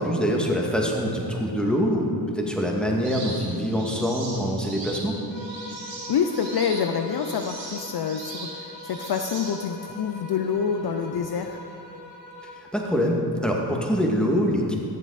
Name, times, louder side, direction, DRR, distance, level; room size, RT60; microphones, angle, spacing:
voice 1, 0.0-5.2 12.7-14.8, equal, ahead, -1 dB, 2.1 m, -24 dB
sound 1, 3.0-9.9, right 2 dB, 75° right, 2.7 m, -39 dB
sound 2, 5.3-12.7, left 1 dB, 85° left, 2.6 m, -42 dB
voice 2, 6.1-11.6, left 7 dB, 55° left, 6 dB, 0.6 m, -27 dB
14.0 x 7.4 x 4.2 m, 2.7 s
supercardioid pair, 40°, 45 cm